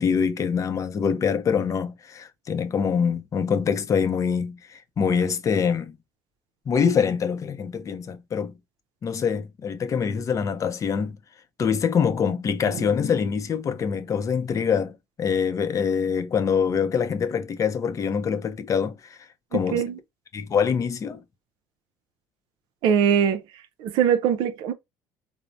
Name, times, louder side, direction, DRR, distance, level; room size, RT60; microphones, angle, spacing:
voice 1, 0.0-6.0 6.7-8.5 9.0-11.2 11.6-19.2 19.5-19.8 20.3-21.2, left 6 dB, 40° left, 0.5 m, -24 dB
voice 2, 19.5-20.0 22.8-23.4 23.8-24.7, right 8 dB, 70° right, 0.4 m, -22 dB
3.1 x 2.0 x 2.4 m
supercardioid pair, 85°, 9 cm